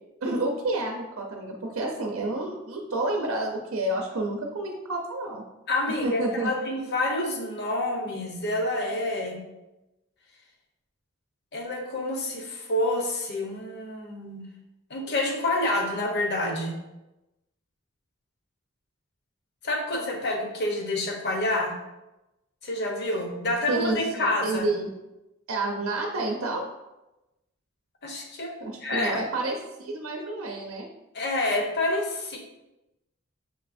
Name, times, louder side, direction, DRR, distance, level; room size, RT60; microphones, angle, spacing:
voice 1, 0.2-5.4 5.9-6.5 23.7-24.9 25.5-26.6 28.6-30.9, right 2 dB, 85° right, 1 dB, 0.6 m, -29 dB
voice 2, 5.7-9.4 11.5-14.4 14.9-16.8 19.6-21.8 22.6-24.7 28.0-28.6 28.8-29.2 31.1-32.4, left 1 dB, 55° left, 2 dB, 0.9 m, -28 dB
6.2 x 3.1 x 2.6 m, 0.98 s
head